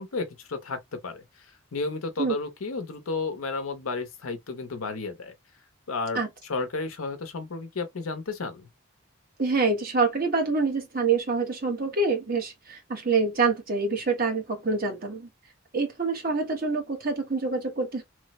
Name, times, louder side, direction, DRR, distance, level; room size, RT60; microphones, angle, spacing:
voice 1, 0.0-5.3 5.9-8.7, left 3 dB, 85° left, 0.7 m, -33 dB
voice 2, 9.4-15.3 15.7-18.0, right 4 dB, 45° right, 1.0 m, -26 dB
3.2 x 2.0 x 2.9 m
head